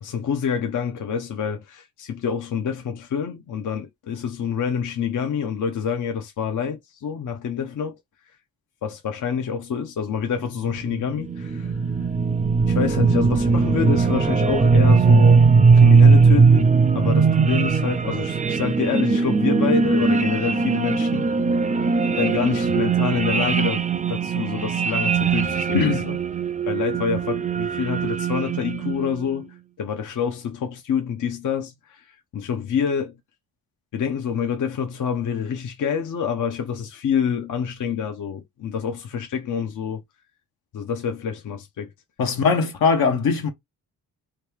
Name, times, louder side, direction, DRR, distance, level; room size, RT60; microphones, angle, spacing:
voice 1, 0.0-8.0 8.8-11.8 12.7-15.5 15.7-16.7 16.9-21.3 22.2-23.8 24.1-26.2 26.7-33.1 33.9-40.0 40.7-41.9, left 7 dB, 55° left, 0.7 m, -27 dB
sound 1, 10.8-29.2, right 4 dB, 20° right, 0.4 m, -19 dB
voice 2, 25.7-26.1 42.2-43.5, left 5 dB, 70° left, 1.0 m, -20 dB
3.0 x 2.3 x 3.4 m
cardioid pair, 75°, 37 cm